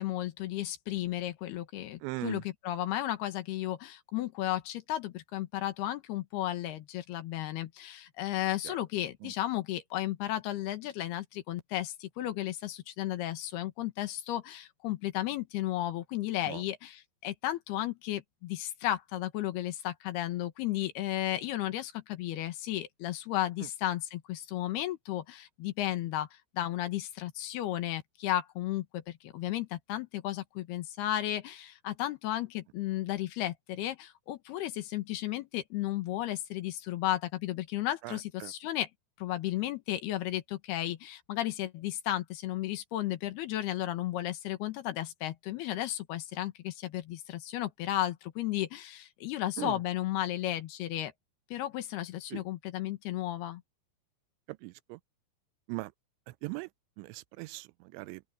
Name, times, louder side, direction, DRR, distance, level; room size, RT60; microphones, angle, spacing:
voice 1, 0.0-38.9 39.2-51.1 51.5-53.6, left 14 dB, 70° left, 3.1 m, -34 dB
voice 2, 2.0-2.4 8.7-8.8 9.2-9.3 16.5-16.6 38.0-38.5 49.6-49.8 52.3-52.4 54.5-55.0 55.7-55.9 56.4-56.7 57.0-58.2, right 23 dB, 90° right, 3.0 m, -39 dB
open air
omnidirectional pair, 5.2 m